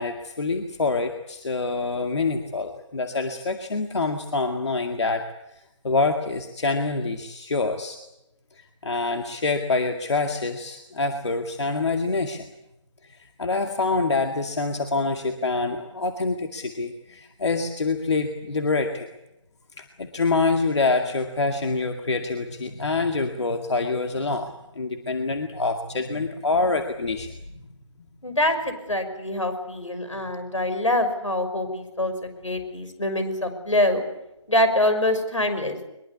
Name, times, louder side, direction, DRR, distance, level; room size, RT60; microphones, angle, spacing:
voice 1, 0.0-8.0 8.5-12.5 13.0-19.1 19.8-27.3, left 3 dB, 65° left, 5 dB, 2.1 m, -26 dB
voice 2, 28.2-32.1 32.4-34.0 34.5-35.8, left 1 dB, 90° left, 9 dB, 5.8 m, -24 dB
22.5 x 22.0 x 8.4 m, 0.90 s
figure-of-eight pair, 150°, 16 cm